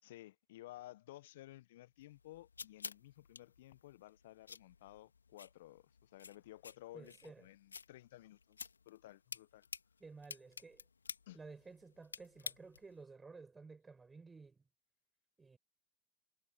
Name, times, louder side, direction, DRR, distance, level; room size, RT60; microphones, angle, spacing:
voice 1, 0.0-8.6 8.8-9.7 11.3-11.4, left 16 dB, 65° left, 1.2 m, -55 dB
sound 1, 2.0-13.0, left 5 dB, 85° left, 2.6 m, -52 dB
voice 2, 6.9-7.5 10.0-10.8 11.3-14.7 15.4-15.6, right 4 dB, 15° right, 5.7 m, -54 dB
figure-of-eight pair, 80°, 0 cm